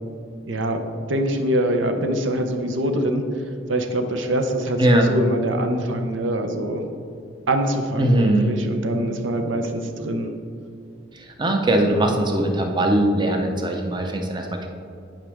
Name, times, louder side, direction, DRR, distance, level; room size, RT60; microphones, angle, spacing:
voice 1, 0.5-0.8 1.1-3.3 3.7-6.8 7.5-10.3, right 1 dB, 85° right, 6 dB, 0.7 m, -24 dB
voice 2, 4.8-5.1 8.0-8.5 11.4-14.7, right 1 dB, 25° right, 3 dB, 0.7 m, -20 dB
10.0 x 5.1 x 3.5 m, 2.4 s
head